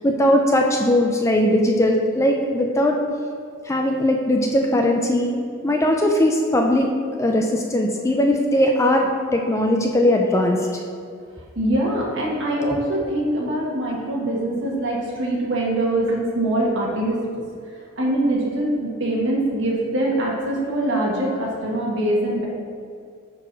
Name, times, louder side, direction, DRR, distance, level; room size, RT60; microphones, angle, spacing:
voice 1, 0.0-3.0 3.7-6.9 7.2-10.7, left 1 dB, 15° left, 2 dB, 0.3 m, -19 dB
voice 2, 11.5-17.2 18.0-22.5, right 1 dB, 60° right, -3 dB, 1.3 m, -23 dB
4.5 x 4.2 x 5.8 m, 2.2 s
head